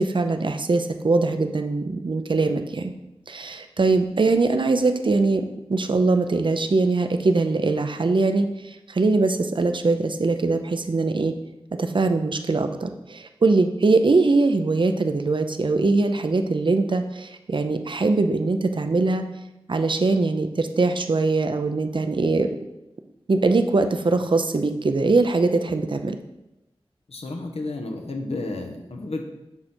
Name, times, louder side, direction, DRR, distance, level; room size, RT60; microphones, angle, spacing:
voice 1, 0.0-2.9 3.3-5.4 5.7-11.3 11.8-19.2 19.7-22.5 23.3-26.2, right 3 dB, 55° right, 7 dB, 0.7 m, -22 dB
voice 2, 27.1-29.2, left 2 dB, 80° left, 3 dB, 1.2 m, -31 dB
7.2 x 6.3 x 4.4 m, 0.92 s
wide cardioid pair, 70°, 10 cm